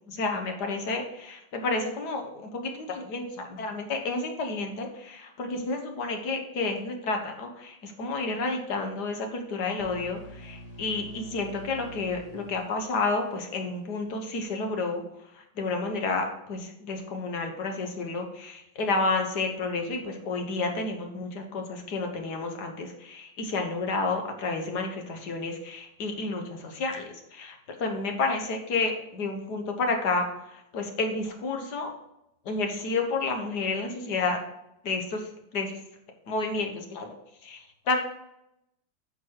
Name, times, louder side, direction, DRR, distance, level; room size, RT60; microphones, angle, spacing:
voice 1, 0.1-15.0 15.3-31.9 32.5-34.4 34.8-35.7 36.3-37.1 37.4-38.0, left 3 dB, 65° left, 4 dB, 1.9 m, -30 dB
sound 1, 9.8-13.7, equal, 20° left, 1.8 m, -46 dB
9.5 x 5.5 x 4.7 m, 0.83 s
omnidirectional pair, 2.0 m